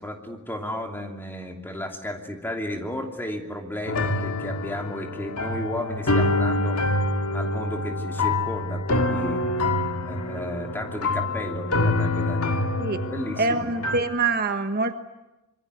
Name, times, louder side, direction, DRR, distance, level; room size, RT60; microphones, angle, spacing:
voice 1, 0.0-6.9 7.3-9.4 10.0-12.8 13.1-13.7, left 1 dB, 10° left, 3 dB, 2.9 m, -33 dB
sound 1, 3.9-14.0, left 2 dB, 85° left, 2.0 m, -26 dB
voice 2, 13.4-14.9, right 3 dB, 45° right, 7 dB, 1.3 m, -25 dB
25.5 x 23.5 x 9.6 m, 0.98 s
head